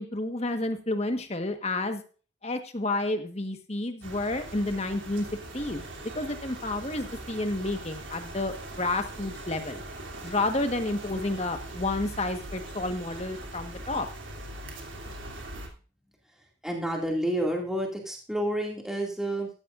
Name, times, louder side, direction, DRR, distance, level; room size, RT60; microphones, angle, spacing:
voice 1, 0.0-2.0 2.4-5.2 5.5-5.8 6.1-9.8 10.2-14.1, left 2 dB, 35° left, 7 dB, 1.4 m, -30 dB
sound 1, 4.0-15.7, right 2 dB, 80° right, 3.2 m, -41 dB
voice 2, 16.6-19.5, right 1 dB, 5° right, -1 dB, 2.4 m, -29 dB
15.0 x 12.5 x 2.6 m, 0.37 s
head